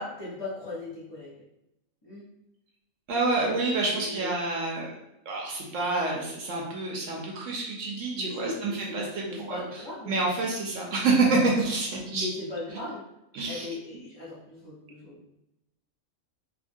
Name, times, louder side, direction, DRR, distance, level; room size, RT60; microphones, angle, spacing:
voice 1, 0.0-1.4 2.0-2.2 3.9-4.3 8.1-10.2 12.1-13.0 13.4-15.2, left 2 dB, 25° left, -10 dB, 0.7 m, -38 dB
voice 2, 3.1-4.9 5.3-9.8 10.1-12.3 13.3-13.7, right 3 dB, 70° right, -2 dB, 0.9 m, -28 dB
2.9 x 2.4 x 2.5 m, 0.87 s
omnidirectional pair, 1.4 m